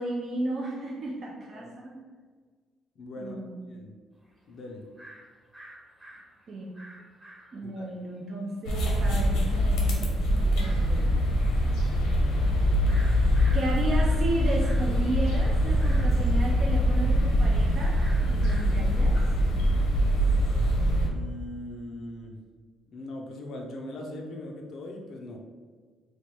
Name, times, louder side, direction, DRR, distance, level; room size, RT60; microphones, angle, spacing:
voice 1, 0.0-2.0 3.2-3.6 6.5-6.7 7.5-11.2 13.5-18.0 18.3-19.2, right 2 dB, 40° right, -2 dB, 0.4 m, -34 dB
voice 2, 3.0-3.4 3.7-3.9 4.5-4.8 7.6-8.0 21.0-22.4 22.9-25.4, left 1 dB, 50° left, 2 dB, 0.4 m, -40 dB
sound 1, 4.2-4.3 5.0-5.2 5.5-7.8 8.2-8.3 8.5-8.8 9.5-9.6 10.2-10.3 10.7-10.9 11.3-14.2 14.5-19.5, right 1 dB, 15° right, 1.0 m, -49 dB
sound 2, 8.6-21.1, equal, 90° left, 0.8 m, -23 dB
3.1 x 2.3 x 4.2 m, 1.5 s
cardioid pair, 165°, 0 cm